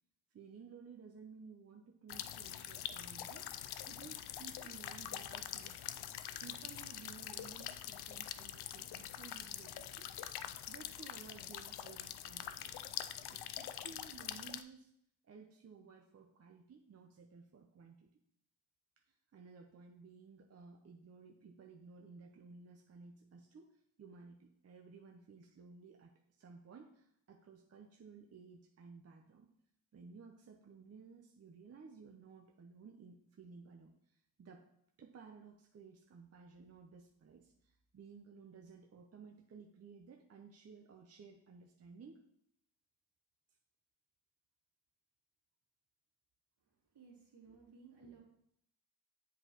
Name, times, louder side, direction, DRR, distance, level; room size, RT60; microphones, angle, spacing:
voice 1, 0.3-3.5 3.9-6.0 6.4-10.0 10.7-12.8 13.3-14.9 15.2-18.1 19.1-29.5 29.9-34.7 35.0-42.2, right 5 dB, 35° right, 2 dB, 0.8 m, -56 dB
sound 1, 2.1-14.6, left 11 dB, 65° left, 0.5 m, -45 dB
voice 2, 46.9-48.2, right 5 dB, 70° right, -3 dB, 2.6 m, -58 dB
7.6 x 4.6 x 3.0 m, 0.72 s
cardioid pair, 65°, 42 cm